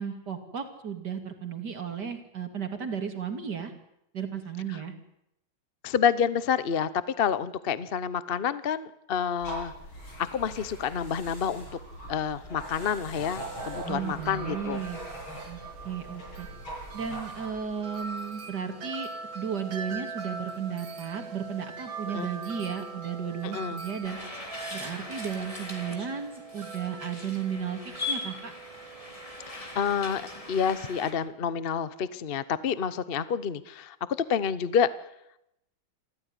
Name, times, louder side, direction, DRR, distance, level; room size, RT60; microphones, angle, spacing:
voice 1, 0.0-3.7 4.1-4.9 13.9-15.0 15.5-15.6 15.8-16.5 16.9-19.1 19.3-24.2 24.7-28.5, right 7 dB, 55° right, 7 dB, 3.2 m, -34 dB
voice 2, 5.8-6.9 7.2-9.7 10.2-11.7 12.1-14.8 22.1-22.3 23.5-23.8 29.5-33.9 34.3-34.9, left 7 dB, 45° left, 16 dB, 0.8 m, -28 dB
sound 1, 9.4-18.1, right 1 dB, 75° left, 8.5 m, -41 dB
Wind chime, 12.8-30.7, right 4 dB, 70° right, 2.4 m, -43 dB
sound 2, 24.0-31.1, left 2 dB, 15° left, 3.4 m, -40 dB
27.5 x 14.5 x 9.9 m, 0.83 s
omnidirectional pair, 2.2 m